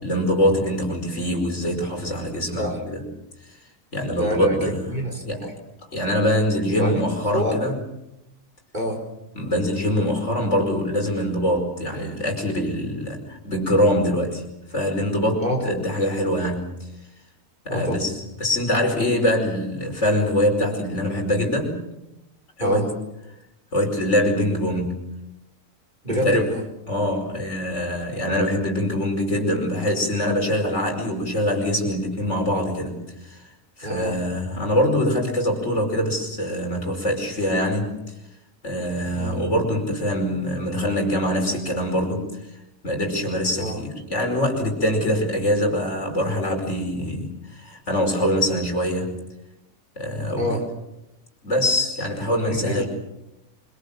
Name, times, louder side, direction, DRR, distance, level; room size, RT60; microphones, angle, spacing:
voice 1, 0.0-3.0 3.5-3.6 3.9-4.9 5.2-5.4 5.9-7.8 9.4-14.4 14.7-16.7 17.7-18.1 18.4-21.8 22.6-22.8 23.7-25.0 26.1-26.5 26.9-33.0 33.2-33.5 33.8-37.9 38.6-42.3 42.8-49.2 50.0-50.5 51.4-52.9, equal, 60° left, 2 dB, 5.5 m, -23 dB
voice 2, 4.1-5.6 6.7-7.0 7.3-7.6 8.7-9.0 15.4-15.8 17.7-18.0 22.6-22.9 26.0-26.6 28.2-28.4 33.8-34.2 39.1-39.4 43.6-43.8 50.4-50.7 52.4-52.9, equal, 35° right, 2 dB, 5.2 m, -27 dB
26.0 x 25.5 x 7.4 m, 0.90 s
omnidirectional pair, 1.4 m